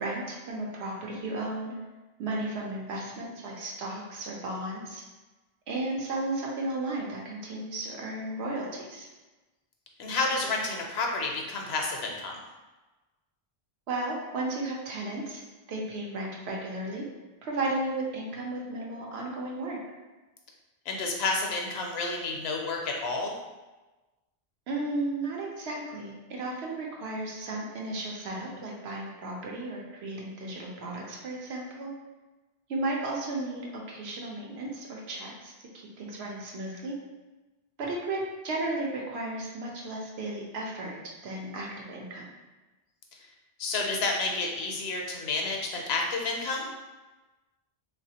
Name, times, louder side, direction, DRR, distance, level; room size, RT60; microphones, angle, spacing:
voice 1, 0.0-1.7 2.2-5.0 5.7-9.1 13.9-15.4 15.7-17.1 17.4-19.8 24.7-31.9 32.7-35.5 36.0-37.0 37.8-41.0 41.2-42.3, right 2 dB, 85° right, -2 dB, 0.9 m, -34 dB
voice 2, 10.0-12.3 20.9-23.4 43.6-46.7, left 3 dB, 80° left, 1 dB, 0.8 m, -30 dB
3.2 x 2.4 x 2.7 m, 1.2 s
omnidirectional pair, 1.0 m